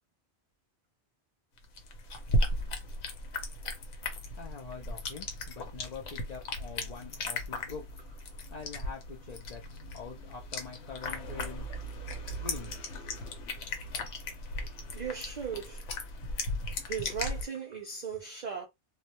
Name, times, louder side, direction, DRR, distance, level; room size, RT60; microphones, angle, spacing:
sound 1, 1.6-17.4, left 1 dB, 80° left, 1.0 m, -36 dB
voice 1, 4.4-9.6 9.9-11.7 12.4-12.9 13.4-13.5, left 5 dB, 55° left, 0.5 m, -45 dB
voice 2, 14.9-15.9 16.9-18.7, right 7 dB, 55° right, 0.5 m, -37 dB
2.2 x 2.1 x 2.8 m
omnidirectional pair, 1.2 m